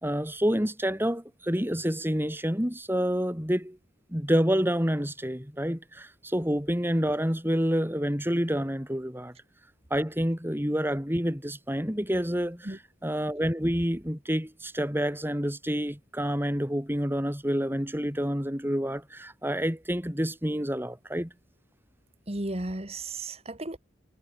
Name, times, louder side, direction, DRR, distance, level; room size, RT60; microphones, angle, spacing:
voice 1, 0.0-3.8 4.1-9.3 9.9-21.3, equal, 10° right, 5.2 m, -28 dB
voice 2, 22.3-23.8, right 2 dB, 35° right, 2.2 m, -34 dB
head